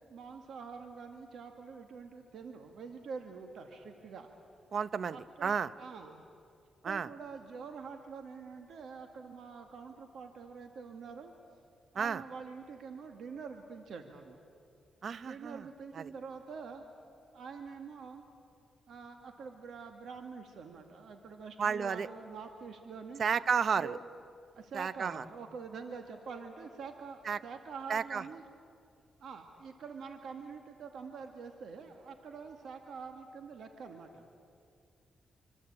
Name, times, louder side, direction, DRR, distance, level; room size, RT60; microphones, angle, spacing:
voice 1, 0.1-4.3 5.1-6.2 6.8-11.3 11.9-14.4 15.2-16.8 17.3-18.2 18.9-23.2 23.8-24.0 24.6-28.5 29.2-34.3, right 5 dB, 75° right, 5 dB, 2.0 m, -46 dB
voice 2, 4.7-5.7 6.8-7.1 12.0-12.2 15.0-15.7 15.9-16.1 21.6-22.1 23.2-24.0 24.7-25.2 27.2-27.4 27.9-28.2, right 6 dB, 60° right, 16 dB, 0.8 m, -32 dB
25.5 x 24.5 x 8.8 m, 2.4 s
cardioid pair, 85°, 0 cm